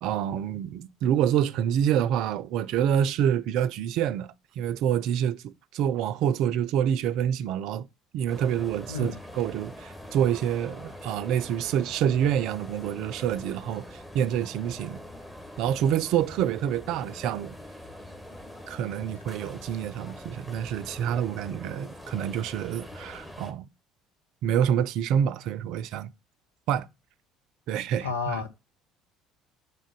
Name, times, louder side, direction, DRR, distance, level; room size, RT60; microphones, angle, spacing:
voice 1, 0.0-7.9 8.1-15.0 15.6-17.6 18.7-23.7 24.4-26.1 26.7-26.9 27.7-28.5, right 9 dB, 55° right, 0.4 m, -27 dB
sound 1, 8.3-23.5, left 1 dB, 10° left, 1.3 m, -44 dB
voice 2, 8.9-9.2 28.0-28.5, left 5 dB, 80° left, 0.7 m, -31 dB
5.3 x 3.7 x 5.0 m
figure-of-eight pair, 55°, 0 cm